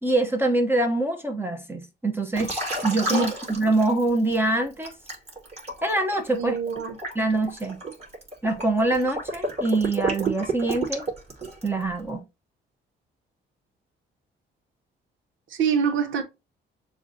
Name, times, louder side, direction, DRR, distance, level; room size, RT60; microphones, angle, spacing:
voice 1, 0.0-4.9 5.8-6.6 7.1-7.8 8.4-11.1 11.6-12.2, right 2 dB, 10° right, 0.8 m, -24 dB
Liquid, 2.3-4.4 4.8-11.8, right 2 dB, 30° right, 2.4 m, -31 dB
voice 2, 6.4-7.0 15.5-16.2, right 6 dB, 80° right, 1.1 m, -25 dB
7.0 x 2.4 x 2.7 m
cardioid pair, 90°, 20 cm